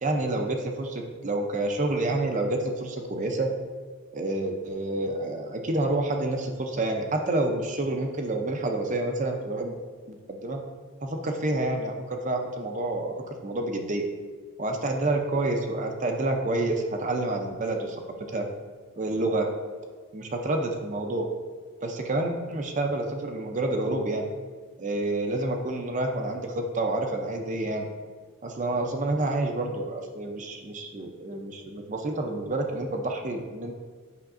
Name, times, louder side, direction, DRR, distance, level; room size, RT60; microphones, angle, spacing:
voice 1, 0.0-3.5 4.1-9.7 10.1-10.6 11.0-13.1 13.4-14.0 14.6-18.0 18.3-18.4 19.0-19.5 20.1-21.3 21.8-24.2 24.8-27.9 28.4-33.8, right 2 dB, 35° right, 3 dB, 0.5 m, -28 dB
8.4 x 5.7 x 2.5 m, 1.5 s
head